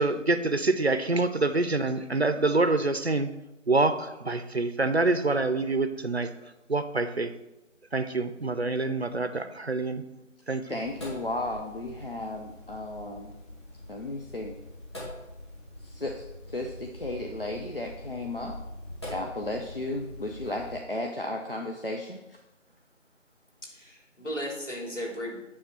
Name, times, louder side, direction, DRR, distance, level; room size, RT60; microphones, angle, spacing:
voice 1, 0.0-3.3 3.7-6.3 6.7-7.3 7.9-10.0 10.5-10.6, right 3 dB, 55° right, 9 dB, 0.7 m, -26 dB
voice 2, 10.7-13.3 13.9-14.5 15.8-16.1 16.5-18.6 19.1-22.4, left 1 dB, 45° left, 1 dB, 0.7 m, -34 dB
Sink (filling or washing), 10.8-20.8, left 1 dB, 20° left, 2.0 m, -43 dB
voice 3, 23.6-25.4, equal, 70° left, -1 dB, 3.3 m, -35 dB
9.4 x 3.5 x 6.9 m, 0.97 s
figure-of-eight pair, 170°, 38 cm